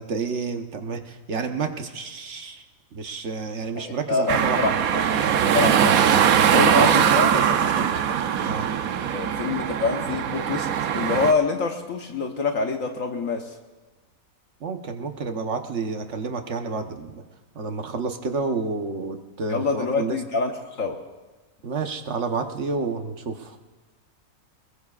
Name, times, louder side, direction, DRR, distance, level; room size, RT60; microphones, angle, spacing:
voice 1, 0.0-2.6 2.9-4.6 6.4-8.1 8.4-8.7 14.6-17.2 17.5-20.2 21.6-23.6, right 4 dB, 55° right, 5 dB, 1.3 m, -30 dB
voice 2, 3.7-6.1 6.5-7.3 7.6-7.7 9.1-10.7 10.9-13.6 19.5-21.0, left 4 dB, 65° left, 3 dB, 1.4 m, -26 dB
sound 1, 4.3-11.3, right 8 dB, 75° right, 1.2 m, -21 dB
27.5 x 20.5 x 2.4 m, 1.3 s
omnidirectional pair, 1.6 m